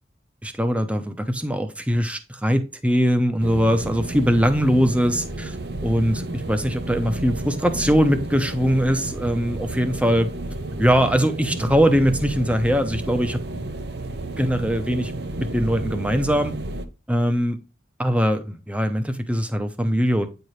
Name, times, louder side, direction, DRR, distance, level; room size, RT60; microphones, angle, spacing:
voice 1, 0.4-5.6 5.8-10.3 10.8-13.7 14.4-16.5 17.1-17.6 18.0-20.3, equal, 5° right, 0.8 m, -21 dB
sound 1, 3.4-16.9, right 2 dB, 60° right, 0.8 m, -31 dB
9.3 x 4.5 x 3.2 m
head